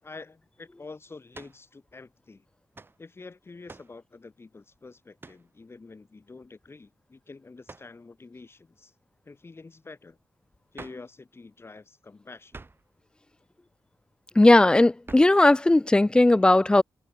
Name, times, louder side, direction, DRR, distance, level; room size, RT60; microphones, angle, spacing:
voice 1, 0.0-2.4 3.0-8.9 9.2-10.2 10.7-12.5, left 3 dB, 30° left, 5.9 m, -47 dB
sound 1, 1.3-1.6 2.7-3.0 3.7-4.0 5.2-5.5 7.7-8.0 10.7-11.1 12.5-12.9 15.1-15.4, right 3 dB, 30° right, 1.6 m, -46 dB
voice 2, 14.4-16.8, left 2 dB, 10° left, 0.3 m, -17 dB
wide cardioid pair, 115°, 8 cm